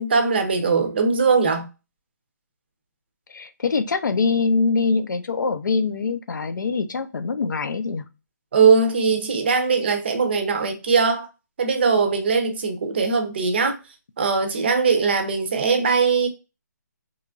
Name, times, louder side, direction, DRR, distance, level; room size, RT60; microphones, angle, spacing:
voice 1, 0.0-1.7 8.5-11.3 11.6-13.8 14.2-16.3, right 5 dB, 35° right, 0.5 m, -20 dB
voice 2, 3.3-8.1, left 4 dB, 85° left, 0.4 m, -23 dB
2.9 x 2.3 x 2.4 m
hypercardioid pair, 170°, 10 cm